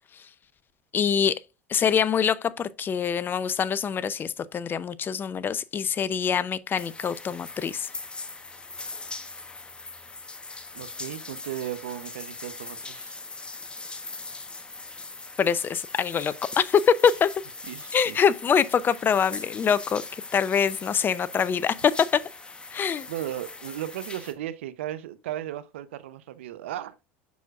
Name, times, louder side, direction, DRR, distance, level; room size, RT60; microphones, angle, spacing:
voice 1, 0.9-1.4 1.7-7.9 15.4-17.3 17.9-20.0 20.3-22.2 22.7-23.1, left 7 dB, 30° left, 0.5 m, -24 dB
sound 1, 6.8-24.3, left 3 dB, 15° left, 1.0 m, -41 dB
voice 2, 10.7-13.2 17.6-18.2 23.1-27.0, right 12 dB, 80° right, 0.7 m, -36 dB
7.0 x 6.1 x 2.4 m
hypercardioid pair, 90°, 6 cm